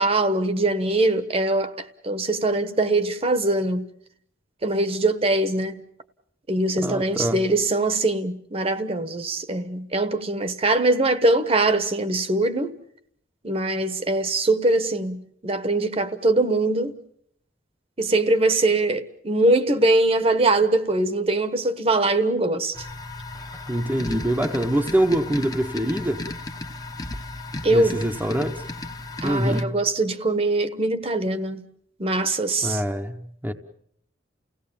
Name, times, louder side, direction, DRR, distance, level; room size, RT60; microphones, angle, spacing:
voice 1, 0.0-3.9 4.6-5.8 6.5-12.8 13.4-17.0 18.0-22.9 27.6-28.0 29.2-31.6 32.0-32.8, right 2 dB, 30° right, 1.1 m, -22 dB
voice 2, 6.8-7.4 23.7-26.2 27.7-28.6 29.2-29.8 32.6-33.5, right 1 dB, 10° right, 0.9 m, -24 dB
sound 1, 22.7-29.6, left 2 dB, 20° left, 1.0 m, -35 dB
30.0 x 17.0 x 7.1 m
head